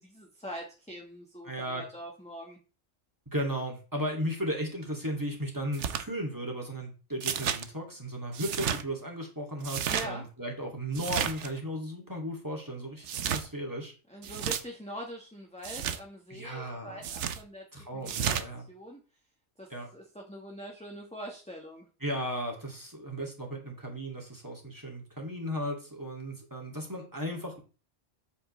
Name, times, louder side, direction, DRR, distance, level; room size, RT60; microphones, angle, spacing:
voice 1, 0.0-2.6 9.9-10.3 14.1-17.6 17.9-18.4 18.7-19.0 19.6-21.8, equal, 5° left, -1 dB, 1.4 m, -43 dB
voice 2, 1.4-1.9 3.3-13.9 16.3-17.1 17.7-18.7 19.7-19.9 22.0-27.6, equal, 15° right, 0 dB, 2.4 m, -35 dB
sound 1, 5.7-6.0 7.2-7.6 8.3-8.8 9.6-10.1 10.9-11.5 13.0-13.5 14.2-14.6 15.6-16.0 17.0-17.4 18.1-18.5, right 8 dB, 70° right, 1.0 m, -32 dB
8.2 x 8.0 x 3.2 m, 0.34 s
omnidirectional pair, 1.3 m